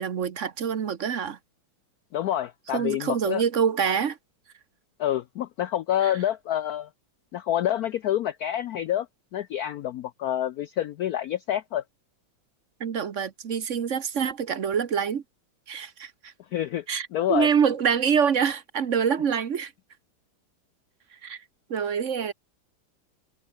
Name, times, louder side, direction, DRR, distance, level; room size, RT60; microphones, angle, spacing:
voice 1, 0.0-1.4 2.7-4.2 6.0-6.1 12.8-15.2 15.7-16.3 16.9-19.7 21.2-21.4 21.7-22.3, right 7 dB, 50° right, 1.1 m, -26 dB
voice 2, 2.1-3.4 5.0-6.9 7.3-9.1 9.3-11.8 16.5-16.8 17.1-17.5, left 11 dB, 75° left, 0.8 m, -27 dB
omnidirectional pair, 2.2 m